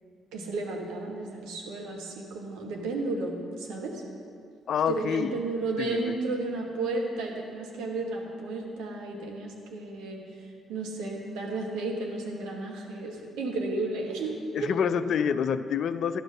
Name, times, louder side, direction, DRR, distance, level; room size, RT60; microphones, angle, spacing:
voice 1, 0.3-4.0 4.9-10.2 10.7-14.7, right 2 dB, 65° right, 0 dB, 1.2 m, -33 dB
voice 2, 4.7-5.4 5.8-6.0 14.5-16.2, left 7 dB, 55° left, 12 dB, 0.4 m, -27 dB
11.5 x 5.1 x 5.9 m, 2.3 s
figure-of-eight pair, 40°, 0 cm